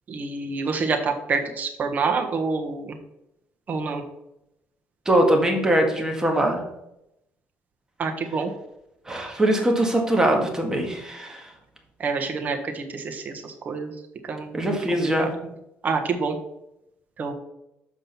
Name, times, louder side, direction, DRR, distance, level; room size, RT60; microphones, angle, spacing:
voice 1, 0.1-3.0 3.7-4.0 8.0-8.5 12.0-13.9 14.2-14.8 15.2-15.3 15.8-16.4 17.2-17.3, right 4 dB, 40° right, 4 dB, 1.4 m, -27 dB
voice 2, 5.1-6.6 9.1-11.5 14.5-15.3, right 1 dB, 15° right, 2 dB, 1.8 m, -22 dB
7.3 x 5.2 x 5.8 m, 0.85 s
cardioid pair, 110°, 4 cm